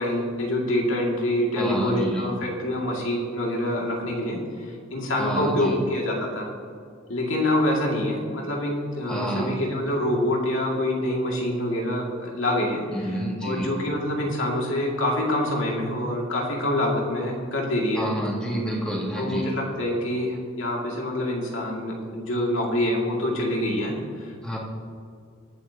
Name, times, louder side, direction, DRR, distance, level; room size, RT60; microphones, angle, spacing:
voice 1, 0.0-6.5 7.1-13.1 13.4-18.1 19.2-24.6, left 1 dB, 75° left, -1 dB, 2.2 m, -26 dB
voice 2, 1.6-2.3 5.2-5.8 9.1-9.5 12.9-13.7 18.0-19.5 24.4-24.6, equal, 5° left, -4 dB, 2.1 m, -29 dB
23.0 x 7.8 x 2.8 m, 2.2 s
head